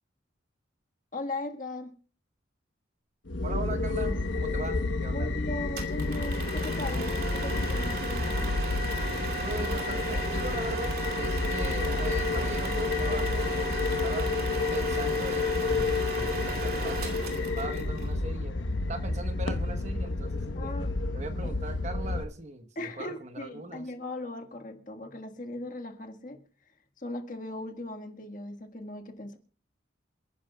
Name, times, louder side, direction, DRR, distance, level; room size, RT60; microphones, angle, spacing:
voice 1, 1.1-1.9 5.1-8.4 20.5-20.9 21.4-21.5 22.7-29.4, left 2 dB, 45° left, 5 dB, 1.6 m, -38 dB
sound 1, 3.3-22.2, left 3 dB, 85° left, 1.0 m, -30 dB
voice 2, 3.4-5.3 9.4-14.3 14.7-20.7 21.1-23.9, right 2 dB, 40° right, 7 dB, 1.1 m, -40 dB
sound 2, 5.8-18.1, right 3 dB, 55° right, 2.6 m, -36 dB
28.5 x 10.0 x 2.3 m, 0.38 s
head